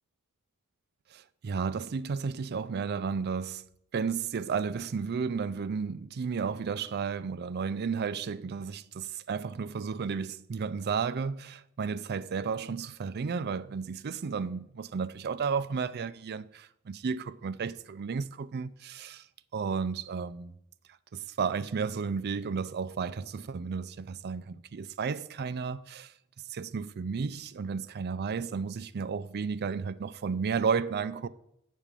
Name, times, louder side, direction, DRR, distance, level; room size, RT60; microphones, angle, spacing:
voice 1, 1.1-3.7 3.9-19.3 19.5-20.5 21.1-26.1 26.5-31.3, right 5 dB, 50° right, 0.4 m, -33 dB
8.1 x 5.2 x 7.4 m
head